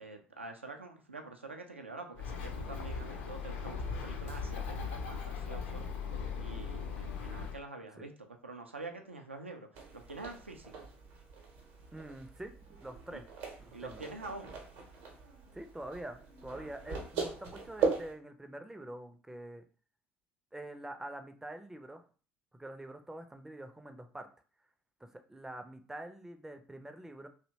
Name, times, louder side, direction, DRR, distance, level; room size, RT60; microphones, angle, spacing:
voice 1, 0.0-5.9 6.4-8.1 8.4-10.9 13.1-13.2 13.7-14.5, right 3 dB, 85° right, 4 dB, 0.3 m, -46 dB
Bird, 2.1-7.6, left 5 dB, 65° left, 0.4 m, -39 dB
sound 1, 9.7-18.1, right 5 dB, 60° right, 0.7 m, -39 dB
voice 2, 11.9-13.3 13.6-14.1 15.5-19.6 20.5-22.0 22.5-24.3 25.0-27.3, right 1 dB, 5° right, 7 dB, 0.4 m, -45 dB
2.7 x 2.1 x 2.7 m, 0.39 s
figure-of-eight pair, 60°, 6 cm